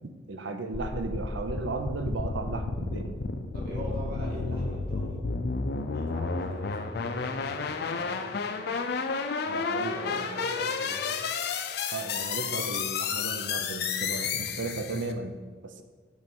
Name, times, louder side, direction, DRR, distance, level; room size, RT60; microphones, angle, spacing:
voice 1, 0.3-3.3 9.4-10.3 11.9-15.8, right 3 dB, 80° right, 7 dB, 0.6 m, -35 dB
sound 1, 0.7-15.1, left 4 dB, 60° left, 0.4 m, -31 dB
voice 2, 3.5-5.2 5.9-8.3 9.6-11.3, equal, 55° right, -4 dB, 1.9 m, -42 dB
8.1 x 3.2 x 5.3 m, 1.4 s
head